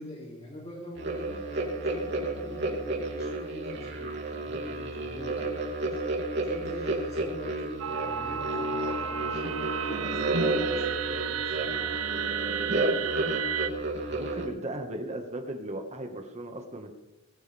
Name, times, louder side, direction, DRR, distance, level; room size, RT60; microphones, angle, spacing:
voice 1, 0.0-6.0 6.4-12.0, left 1 dB, 30° left, -3 dB, 3.1 m, -44 dB
sound 1, 1.0-14.5, right 2 dB, 55° right, 3.0 m, -31 dB
sound 2, 7.8-13.7, right 7 dB, 85° right, 1.0 m, -32 dB
voice 2, 14.0-16.9, right 1 dB, 30° right, 4 dB, 1.8 m, -37 dB
21.0 x 16.0 x 3.6 m, 0.96 s
head